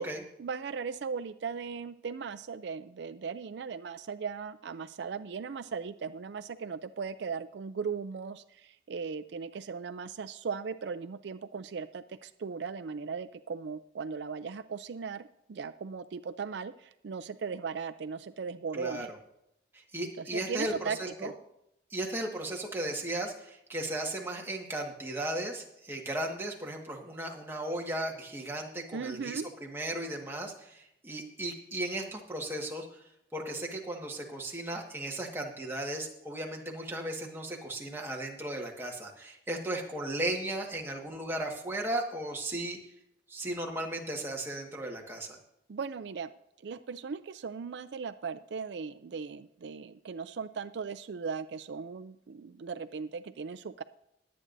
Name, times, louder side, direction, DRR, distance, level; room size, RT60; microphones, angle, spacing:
voice 1, 0.4-19.1 20.2-21.3 28.9-29.5 45.7-46.3 46.6-53.8, right 5 dB, 70° right, 11 dB, 0.4 m, -38 dB
voice 2, 18.7-19.1 19.7-21.3 21.9-33.0 33.3-42.8 43.3-45.4, right 1 dB, 10° right, 0 dB, 1.6 m, -36 dB
21.0 x 8.7 x 2.6 m, 0.80 s
head